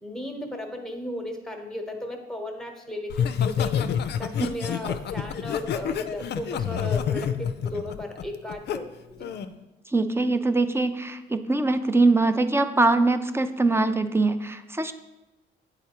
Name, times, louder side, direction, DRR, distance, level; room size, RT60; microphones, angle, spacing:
voice 1, 0.0-9.3, left 1 dB, 5° left, 3 dB, 1.0 m, -35 dB
Laughter, 3.1-8.8 9.2-9.5, left 8 dB, 60° left, 0.4 m, -28 dB
voice 2, 9.9-14.9, right 2 dB, 10° right, 10 dB, 0.4 m, -22 dB
9.0 x 4.0 x 2.9 m, 1.0 s
cardioid pair, 90°, 20 cm